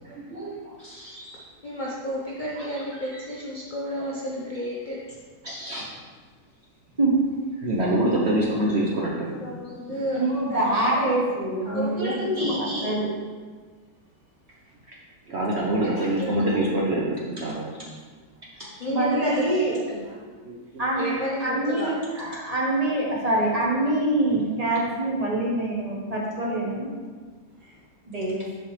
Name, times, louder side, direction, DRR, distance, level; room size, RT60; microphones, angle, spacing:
voice 1, 0.0-1.5 2.6-2.7 3.1-3.2 4.0-4.1 5.4-5.9 7.6-9.4 9.9-10.0 15.3-17.7 18.6-18.7 20.5-20.8, right 1 dB, 55° right, -4 dB, 0.8 m, -26 dB
voice 2, 1.6-5.0 9.4-10.2 10.5-11.1 11.6-13.0 15.8-16.6 18.8-20.2 21.0-21.9, left 1 dB, 45° left, -5 dB, 0.6 m, -31 dB
voice 3, 10.1-13.1 16.0-16.1 18.9-19.8 20.8-21.1 21.4-26.9 28.1-28.4, right 2 dB, 30° right, -4 dB, 0.9 m, -25 dB
6.7 x 5.2 x 3.2 m, 1.5 s
omnidirectional pair, 1.7 m